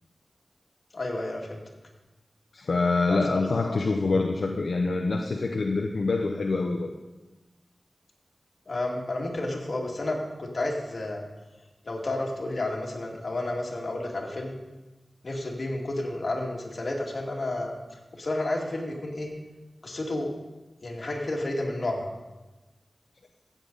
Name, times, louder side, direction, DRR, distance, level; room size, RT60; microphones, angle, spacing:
voice 1, 0.9-1.6 3.1-3.8 8.7-11.2 11.8-14.6 15.2-19.3 19.8-20.3 20.8-22.1, left 2 dB, 55° left, -1 dB, 2.2 m, -31 dB
voice 2, 2.5-6.9, left 3 dB, 75° left, 2 dB, 0.8 m, -26 dB
14.5 x 8.7 x 4.0 m, 1.1 s
wide cardioid pair, 90°, 0 cm